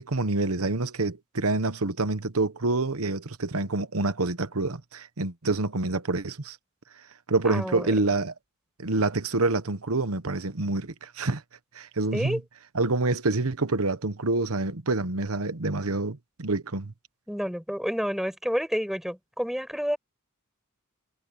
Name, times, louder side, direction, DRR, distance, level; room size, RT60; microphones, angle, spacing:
voice 1, 0.0-6.6 7.3-8.3 8.8-11.4 11.7-12.4 12.7-16.9, right 3 dB, 75° right, 1.2 m, -27 dB
voice 2, 7.4-7.9 12.1-12.4 17.3-20.0, equal, ahead, 6.0 m, -29 dB
head